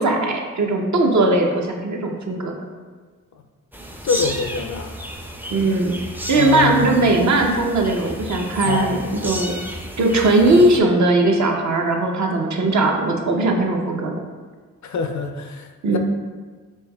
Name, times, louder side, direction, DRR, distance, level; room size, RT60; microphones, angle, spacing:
voice 1, 0.0-2.5 5.5-5.9 6.3-9.5 10.0-14.1 15.8-16.0, right 2 dB, 55° right, 1 dB, 0.7 m, -19 dB
sound 1, 3.7-10.8, equal, 5° right, 0.4 m, -32 dB
voice 2, 4.0-5.0 6.3-6.9 8.6-9.3 10.6-10.7 14.8-16.0, left 5 dB, 55° left, 6 dB, 0.4 m, -25 dB
4.4 x 3.1 x 2.3 m, 1.4 s
cardioid pair, 45°, 35 cm